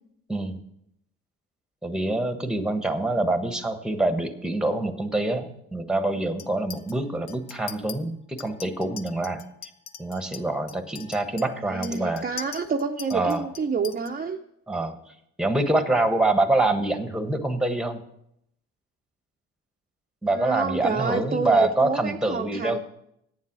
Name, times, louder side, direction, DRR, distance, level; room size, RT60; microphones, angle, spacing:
voice 1, 0.3-0.6 1.8-9.4 10.0-12.2 13.1-13.4 14.7-14.9 15.4-18.0 20.2-22.8, right 2 dB, ahead, 8 dB, 1.2 m, -25 dB
Chink clink, 6.4-6.9 7.3-8.0 8.4-14.1, left 8 dB, 70° left, 0.8 m, -42 dB
voice 2, 11.6-14.4 20.3-22.8, right 5 dB, 30° right, 3 dB, 0.7 m, -29 dB
9.1 x 7.4 x 7.5 m, 0.77 s
cardioid pair, 90°, 30 cm